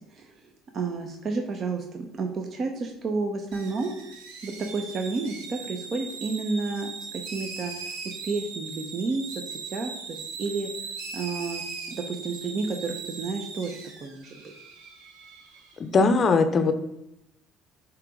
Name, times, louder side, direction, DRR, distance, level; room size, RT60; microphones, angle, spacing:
voice 1, 0.7-4.0 4.4-7.7 8.0-10.7 11.1-11.6 11.9-14.5, right 4 dB, 45° right, 3 dB, 0.7 m, -31 dB
sound 1, 3.5-15.8, right 4 dB, 85° right, 1.1 m, -39 dB
voice 2, 15.8-16.7, left 4 dB, 40° left, 9 dB, 0.6 m, -20 dB
7.2 x 3.0 x 4.9 m, 0.84 s
supercardioid pair, 100°, 0 cm